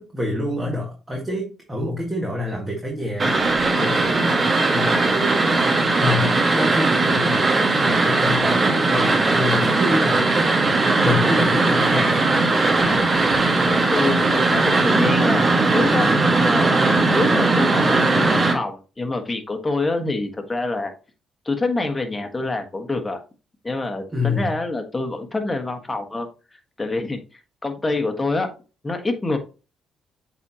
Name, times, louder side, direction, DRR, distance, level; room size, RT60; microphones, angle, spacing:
voice 1, 0.0-3.4 3.8-5.7 6.0-12.2 13.2-13.3 24.1-24.6, left 1 dB, 20° right, -1 dB, 1.7 m, -27 dB
sound 1, 3.2-18.5, right 3 dB, 40° right, 1.8 m, -19 dB
voice 2, 12.8-13.1 13.6-16.1 16.4-20.9 21.4-23.2 23.6-26.3 26.8-27.2 27.6-28.5 28.8-29.4, left 2 dB, 20° left, 4 dB, 1.4 m, -26 dB
8.0 x 4.2 x 2.9 m, 0.33 s
cardioid pair, 90°, 0 cm